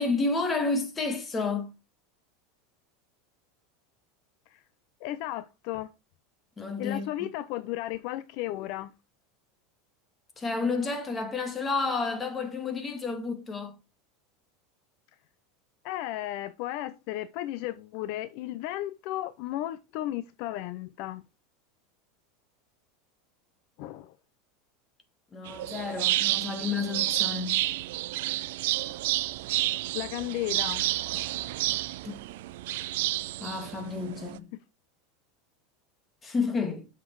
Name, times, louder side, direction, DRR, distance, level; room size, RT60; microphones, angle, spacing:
voice 1, 0.0-1.7 6.6-7.3 10.4-13.7 25.3-27.6 32.0-32.2 33.4-34.5 36.2-36.9, left 4 dB, 20° left, 2.0 m, -30 dB
voice 2, 5.0-5.9 6.8-8.9 15.8-21.2 23.8-24.1 29.9-30.9, left 14 dB, 60° left, 0.6 m, -34 dB
sound 1, 25.4-34.4, right 17 dB, 75° right, 0.6 m, -30 dB
7.9 x 6.1 x 4.7 m
supercardioid pair, 140°, 0 cm